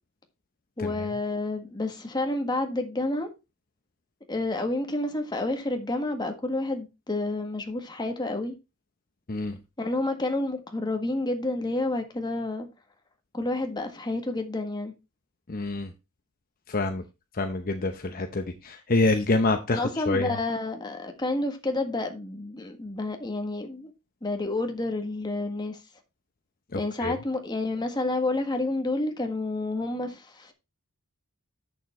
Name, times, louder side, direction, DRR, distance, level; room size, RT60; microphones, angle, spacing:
voice 1, 0.8-3.3 4.3-8.5 9.8-12.7 13.3-14.9 19.7-23.9 24.2-25.8 26.7-30.5, left 2 dB, 20° left, 1.6 m, -29 dB
voice 2, 9.3-9.6 15.5-15.9 16.7-17.0 17.3-20.4 26.7-27.1, left 2 dB, 40° left, 0.8 m, -27 dB
8.3 x 6.9 x 4.3 m
head